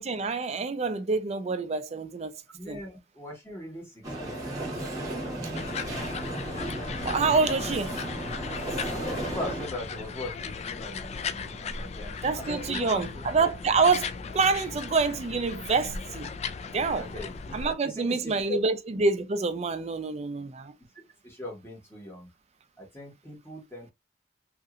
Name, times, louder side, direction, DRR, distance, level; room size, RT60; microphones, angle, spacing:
voice 1, 0.0-2.3 2.7-2.8 7.0-7.9 12.2-16.3 16.7-17.1 17.5-20.7, right 4 dB, 40° right, 0.4 m, -27 dB
voice 2, 2.5-6.2 8.9-13.3 16.9-17.3 17.8-18.6 21.2-22.3 22.8-23.9, left 1 dB, 15° left, 1.3 m, -40 dB
sound 1, 4.0-9.7, right 1 dB, 20° right, 1.1 m, -34 dB
sound 2, 5.5-17.7, left 5 dB, 35° left, 0.3 m, -37 dB
2.9 x 2.7 x 2.5 m
head